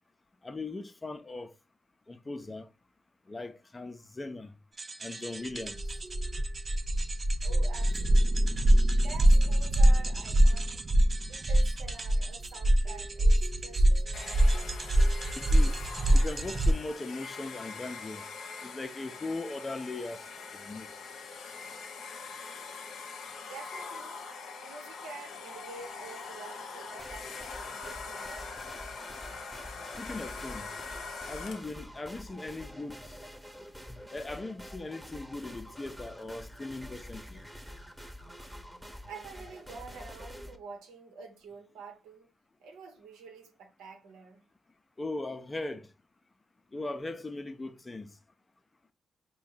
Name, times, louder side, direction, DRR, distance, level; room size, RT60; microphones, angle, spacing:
voice 1, 0.4-1.5 2.1-2.7 3.3-4.5 5.0-5.8 15.4-15.8 16.1-18.2 18.6-20.3 20.5-20.9 30.0-30.7 31.3-33.2 33.9-37.5 45.0-45.9 46.7-48.1, left 2 dB, 30° left, 0.6 m, -39 dB
sound 1, 4.8-16.7, right 1 dB, 40° right, 0.5 m, -24 dB
voice 2, 7.4-8.6 9.0-10.8 11.3-14.7 23.4-24.2 24.6-28.6 39.1-42.3 42.6-44.4, right 5 dB, 75° right, 0.9 m, -48 dB
Domestic sounds home sounds, 14.1-31.8, left 4 dB, 65° left, 0.7 m, -43 dB
sound 2, 27.0-40.6, equal, 5° right, 1.0 m, -47 dB
4.6 x 2.3 x 4.0 m
hypercardioid pair, 40°, 0 cm